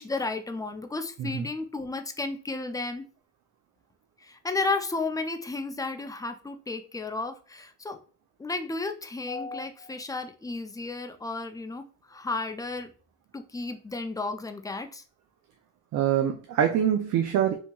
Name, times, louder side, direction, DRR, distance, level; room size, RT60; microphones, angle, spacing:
voice 1, 0.0-3.1 4.2-8.0 8.4-12.9 13.3-15.0, left 3 dB, 10° left, 7 dB, 0.3 m, -33 dB
voice 2, 15.9-17.6, right 9 dB, 70° right, 4 dB, 0.4 m, -24 dB
2.8 x 2.6 x 2.3 m, 0.39 s
cardioid pair, 90°, 30 cm